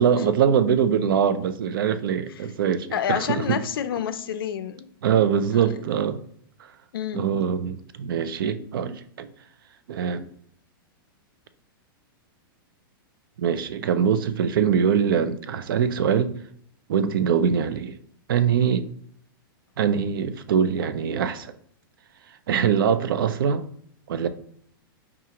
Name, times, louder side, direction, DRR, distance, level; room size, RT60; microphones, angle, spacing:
voice 1, 0.0-3.6 5.0-6.2 7.1-9.3 9.9-10.3 13.4-16.3 16.9-18.0 18.3-18.9 19.8-21.5 22.5-23.6 24.1-24.3, right 7 dB, 70° right, 0.4 m, -23 dB
voice 2, 2.9-4.9 6.9-7.3, left 9 dB, 75° left, 0.4 m, -28 dB
4.7 x 2.4 x 2.8 m
supercardioid pair, 180°, 12 cm